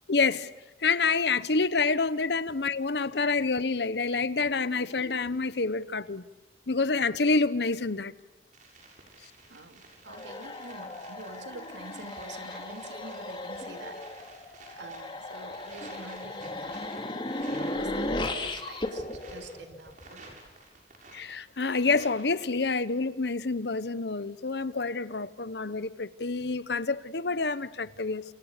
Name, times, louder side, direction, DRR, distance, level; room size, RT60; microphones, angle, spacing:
voice 1, 0.1-0.5 0.8-6.2 6.7-8.1 21.1-28.2, left 4 dB, 65° left, 1.0 m, -28 dB
sound 1, 8.5-22.5, right 3 dB, 45° right, 6.9 m, -53 dB
voice 2, 9.2-14.0 14.3-16.8 17.0-20.3, right 2 dB, 90° right, 2.8 m, -47 dB
sound 2, 10.1-20.3, left 2 dB, 30° left, 2.5 m, -36 dB
30.0 x 29.0 x 6.8 m
head